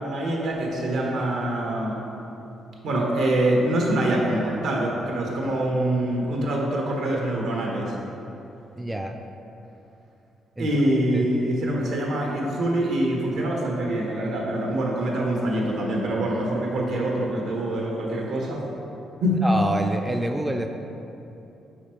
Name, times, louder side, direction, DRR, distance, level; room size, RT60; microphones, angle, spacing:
voice 1, 0.0-2.0 2.8-7.9 10.6-18.6 19.2-19.4, right 1 dB, 80° right, -2 dB, 1.1 m, -25 dB
voice 2, 8.7-9.2 10.6-10.8 11.1-11.3 19.4-20.7, right 1 dB, 10° right, 4 dB, 0.3 m, -27 dB
5.0 x 4.7 x 4.4 m, 2.9 s
cardioid pair, 90°, 0 cm